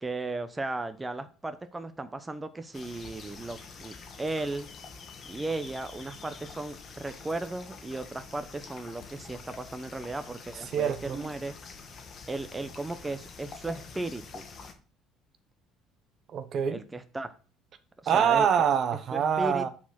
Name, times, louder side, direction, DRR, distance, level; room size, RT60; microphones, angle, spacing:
voice 1, 0.0-4.7 5.3-11.5 12.3-14.5 16.7-17.3 18.0-18.5 19.1-19.7, right 2 dB, 15° right, 0.7 m, -36 dB
sound 1, 2.7-14.7, left 4 dB, 45° left, 1.4 m, -46 dB
voice 2, 10.7-11.2 16.3-16.8 18.1-19.7, right 8 dB, 50° right, 0.8 m, -25 dB
5.9 x 4.2 x 6.2 m
supercardioid pair, 95°, 0 cm